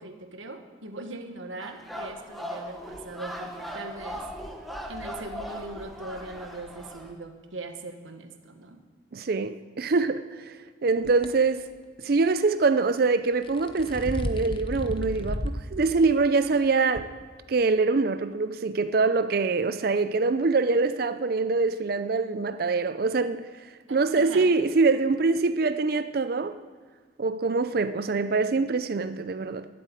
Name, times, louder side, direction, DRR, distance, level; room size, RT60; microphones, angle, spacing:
voice 1, 0.0-4.3 4.9-8.8 23.9-24.5, right 2 dB, 85° right, 1.4 m, -40 dB
sound 1, 1.6-7.1, equal, ahead, 1.2 m, -38 dB
voice 2, 9.1-10.6 10.8-11.7 12.0-17.1 17.5-23.5 23.9-26.5 27.2-29.7, right 4 dB, 50° right, 0.4 m, -24 dB
sound 2, 11.0-11.3 13.3-15.7 16.1-16.2 17.0-17.1, left 1 dB, 25° left, 0.7 m, -32 dB
12.5 x 7.5 x 9.1 m
head